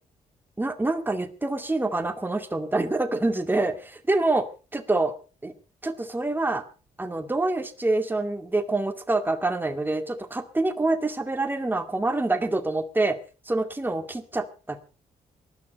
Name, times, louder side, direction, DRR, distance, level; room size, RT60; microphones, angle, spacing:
voice 1, 0.6-4.5 4.7-5.1 5.4-5.5 5.8-6.6 7.0-13.2 13.5-14.8, right 2 dB, 15° right, 6 dB, 2.2 m, -26 dB
18.5 x 12.0 x 5.3 m, 0.36 s
cardioid pair, 75°, 14 cm